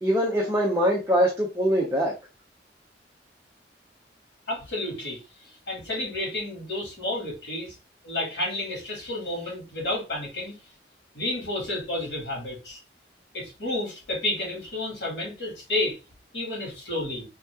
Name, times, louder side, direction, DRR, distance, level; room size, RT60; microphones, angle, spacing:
voice 1, 0.0-2.1, equal, 15° right, -3 dB, 0.7 m, -23 dB
voice 2, 4.5-5.2 5.7-7.7 8.0-10.6 11.1-12.8 13.3-16.0 16.3-17.3, left 1 dB, 70° left, -2 dB, 2.4 m, -31 dB
3.6 x 2.9 x 3.5 m, 0.29 s
head